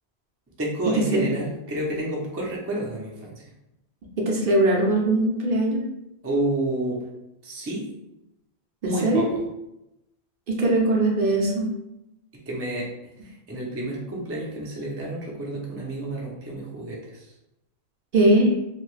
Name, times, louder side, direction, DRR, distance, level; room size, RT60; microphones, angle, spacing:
voice 1, 0.6-3.5 6.2-7.0 7.4-7.9 8.8-9.3 12.3-12.9 13.2-17.3, right 1 dB, 20° right, -3 dB, 0.4 m, -30 dB
voice 2, 4.2-5.8 8.8-9.3 10.5-11.7 18.1-18.5, right 1 dB, 60° right, -2 dB, 0.7 m, -20 dB
2.6 x 2.3 x 3.1 m, 0.89 s
omnidirectional pair, 1.1 m